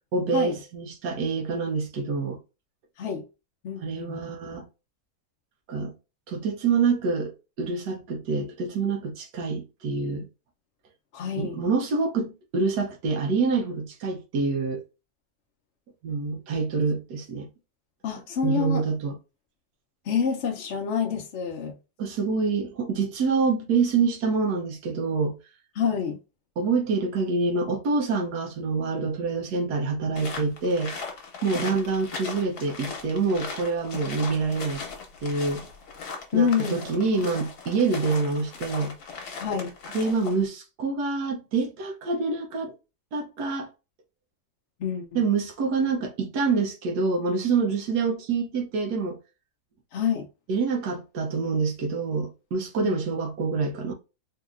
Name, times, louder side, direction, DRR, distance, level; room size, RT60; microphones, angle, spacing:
voice 1, 0.1-2.4 3.8-4.7 5.7-5.9 6.3-7.3 7.6-10.3 11.4-14.8 16.0-17.5 18.4-19.1 22.0-25.4 26.6-30.9 31.4-34.8 35.2-35.6 36.3-39.0 39.9-42.7 43.1-43.7 45.1-49.2 50.5-53.9, right 4 dB, 85° right, 1.3 m, -26 dB
voice 2, 3.6-4.3 11.1-11.6 18.0-18.8 20.1-21.7 25.8-26.2 31.6-31.7 36.3-36.8 39.4-39.7 44.8-45.2 49.9-50.3 52.8-53.0, left 7 dB, 60° left, 0.8 m, -27 dB
sound 1, 30.2-40.5, left 5 dB, 75° left, 1.5 m, -38 dB
4.0 x 2.8 x 2.4 m
omnidirectional pair, 1.7 m